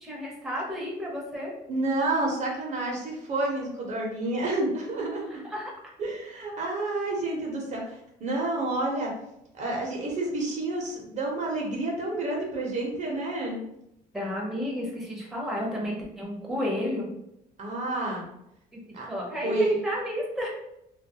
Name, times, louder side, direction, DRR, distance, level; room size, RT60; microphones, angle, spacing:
voice 1, 0.0-1.5 5.3-5.7 14.1-17.1 18.9-20.5, left 1 dB, ahead, -3 dB, 0.7 m, -32 dB
voice 2, 1.7-5.4 6.0-9.1 9.5-13.6 17.6-18.3 18.9-19.1 19.4-19.8, right 2 dB, 45° right, -1 dB, 0.7 m, -29 dB
2.2 x 2.2 x 2.7 m, 0.80 s
cardioid pair, 110°, 17 cm